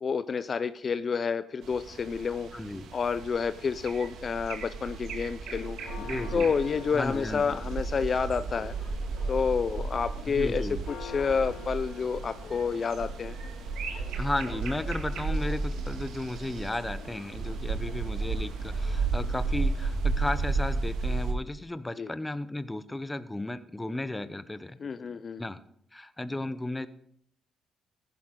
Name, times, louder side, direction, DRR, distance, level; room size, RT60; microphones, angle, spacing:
voice 1, 0.0-2.5 2.9-5.8 6.3-8.7 9.3-10.7 11.0-13.4 22.0-22.1 24.8-25.4, left 5 dB, 45° left, 13 dB, 0.4 m, -29 dB
sound 1, 1.6-21.3, right 3 dB, 80° right, 2.0 m, -33 dB
voice 2, 2.5-2.9 6.0-6.5 6.9-7.6 10.3-10.8 14.2-24.8 25.4-25.6 25.9-26.9, left 2 dB, 15° left, 13 dB, 0.8 m, -34 dB
Church bell, 5.4-20.4, left 5 dB, 75° left, 3.2 m, -47 dB
15.0 x 10.5 x 3.8 m, 0.67 s
cardioid pair, 90°, 0 cm